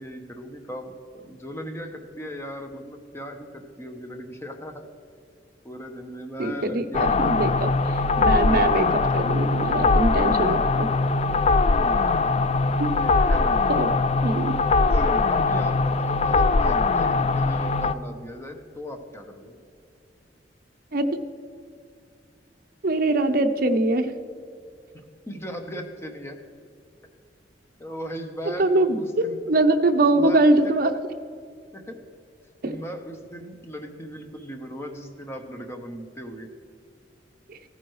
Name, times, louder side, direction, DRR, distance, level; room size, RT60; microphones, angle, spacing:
voice 1, 0.0-4.9 5.6-7.7 11.3-11.4 11.7-11.8 13.0-13.5 14.9-19.5 24.9-26.4 27.8-29.4 30.1-30.4 31.7-32.0 32.6-36.5, equal, 15° left, 4 dB, 0.9 m, -37 dB
voice 2, 6.4-7.7 8.2-10.9 12.8-12.9 13.7-13.9 14.2-14.5 20.9-21.1 22.8-24.1 28.4-30.9 32.6-32.8 37.5-37.6, right 2 dB, 55° right, 6 dB, 0.7 m, -22 dB
sound 1, 6.9-17.9, left 3 dB, 35° left, 0.3 m, -21 dB
15.0 x 9.2 x 3.1 m, 2.3 s
head